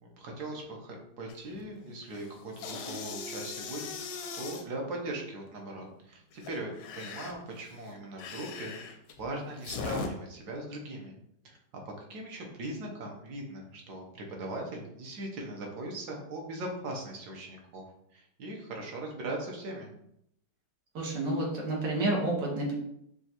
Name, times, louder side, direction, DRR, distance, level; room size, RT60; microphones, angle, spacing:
voice 1, 0.0-11.2 11.4-11.6 12.1-17.8 18.1-19.9, right 1 dB, 70° right, 0 dB, 1.4 m, -40 dB
sound 1, 1.3-1.6 2.0-4.6 6.3-10.1, left 4 dB, 85° left, 1.2 m, -40 dB
voice 2, 21.0-22.7, right 2 dB, 90° right, -2 dB, 1.8 m, -29 dB
5.5 x 2.4 x 2.9 m, 0.74 s
omnidirectional pair, 1.9 m